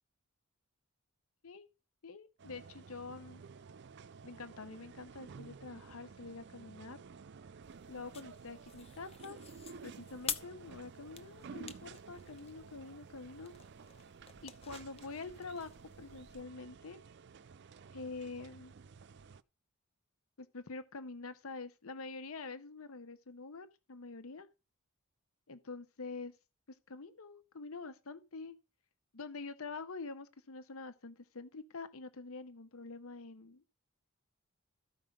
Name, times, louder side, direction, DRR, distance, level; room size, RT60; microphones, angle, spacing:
voice 1, 2.0-3.4 4.2-7.0 7.9-9.4 9.8-13.5 14.4-15.7 16.0-17.0 17.9-18.7 20.4-24.5 25.5-26.3 26.7-28.6 29.1-33.7, left 3 dB, 75° left, 0.8 m, -46 dB
sound 1, 2.4-19.4, right 5 dB, 55° right, 0.4 m, -53 dB
sound 2, 7.6-16.4, left 7 dB, 30° left, 0.8 m, -48 dB
13.5 x 5.8 x 5.0 m
head